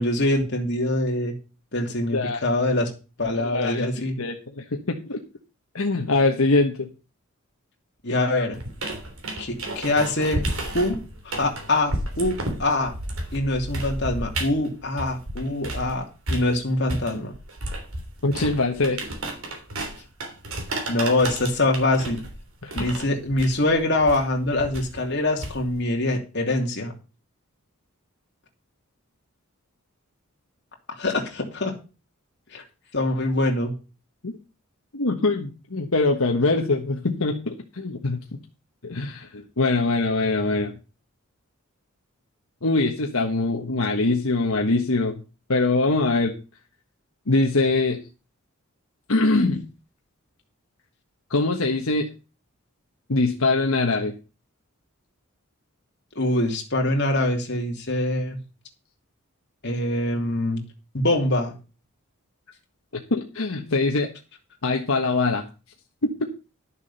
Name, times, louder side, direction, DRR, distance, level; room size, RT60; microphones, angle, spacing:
voice 1, 0.0-1.3 1.7-2.9 3.2-4.2 8.0-8.6 9.4-11.0 11.2-12.9 13.3-17.3 20.9-22.2 22.7-26.9 31.0-31.7 32.5-32.6 32.9-33.7 56.1-58.4 59.6-60.6 60.9-61.6, left 1 dB, 50° left, 1 dB, 2.9 m, -24 dB
voice 2, 3.4-3.9 4.2-5.2 5.7-6.9 18.2-19.0 22.6-22.9 34.2-34.3 34.9-38.2 38.8-40.7 42.6-45.2 45.5-46.3 47.3-48.0 49.1-49.6 51.3-52.1 53.1-54.1 62.9-64.1 64.6-65.4 66.0-66.3, left 3 dB, 75° left, 3 dB, 1.3 m, -23 dB
sound 1, 8.5-15.9 16.3-25.9, right 1 dB, 75° right, 3.3 m, -32 dB
12.0 x 7.2 x 5.6 m, 0.32 s
head